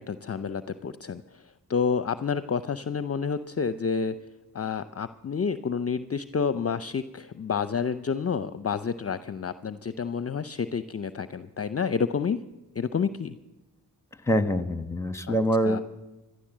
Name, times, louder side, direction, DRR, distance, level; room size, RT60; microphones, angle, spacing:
voice 1, 0.0-1.4 1.7-4.2 4.5-12.4 12.7-13.3 15.3-15.4 15.6-15.8, left 6 dB, 35° left, 13 dB, 0.6 m, -29 dB
voice 2, 14.3-15.8, equal, 5° left, 11 dB, 1.3 m, -25 dB
14.5 x 11.0 x 7.4 m, 1.1 s
supercardioid pair, 45°, 42 cm